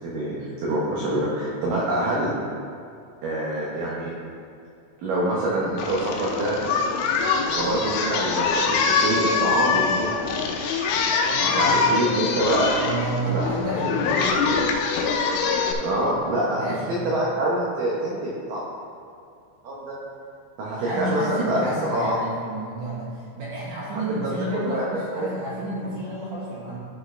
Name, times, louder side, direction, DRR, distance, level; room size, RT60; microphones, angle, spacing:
voice 1, 0.0-2.3 3.2-4.1 5.0-6.6 7.5-10.1 11.6-12.7 13.3-13.5 15.8-18.6 19.6-20.0 20.6-22.2 23.9-25.3, right 1 dB, 90° right, -5 dB, 1.9 m, -26 dB
Singing, 5.8-15.7, left 5 dB, 85° left, 3.1 m, -24 dB
voice 2, 11.3-12.2 12.8-14.5 16.5-17.3 20.7-26.8, right 2 dB, 65° right, -6 dB, 2.2 m, -31 dB
11.5 x 5.9 x 3.3 m, 2.5 s
omnidirectional pair, 5.5 m